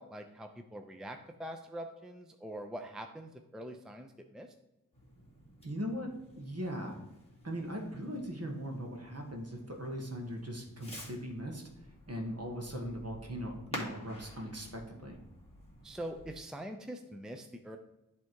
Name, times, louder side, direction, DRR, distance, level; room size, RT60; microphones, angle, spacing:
voice 1, 0.0-4.5 15.8-17.8, right 1 dB, ahead, 5 dB, 0.5 m, -44 dB
Fireworks, 4.9-16.3, equal, 20° left, 2.3 m, -50 dB
voice 2, 5.6-7.0 7.4-11.6 12.1-15.2, equal, 50° right, 2 dB, 1.6 m, -39 dB
10.5 x 3.5 x 4.6 m, 0.95 s
wide cardioid pair, 70°, 33 cm